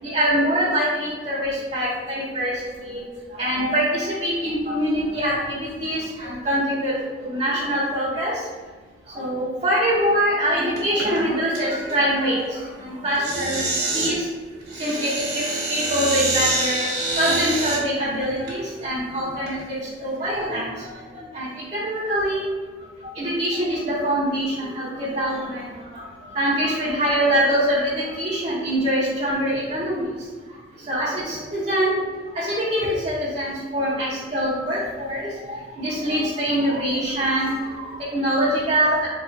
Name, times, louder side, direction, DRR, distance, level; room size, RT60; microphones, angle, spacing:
voice 1, 0.0-2.5 2.8-3.0 3.4-8.3 9.1-12.4 12.8-13.7 13.9-14.2 14.8-16.9 17.2-20.9 21.3-22.4 23.1-25.7 26.3-30.0 30.9-32.0 32.3-39.1, equal, 35° right, -9 dB, 0.7 m, -24 dB
sound 1, 10.8-11.2 11.5-11.9 13.1-14.1 14.7-17.8 18.5-18.6 19.3-19.6, right 2 dB, 60° right, 1.0 m, -26 dB
3.6 x 3.1 x 2.5 m, 1.5 s
head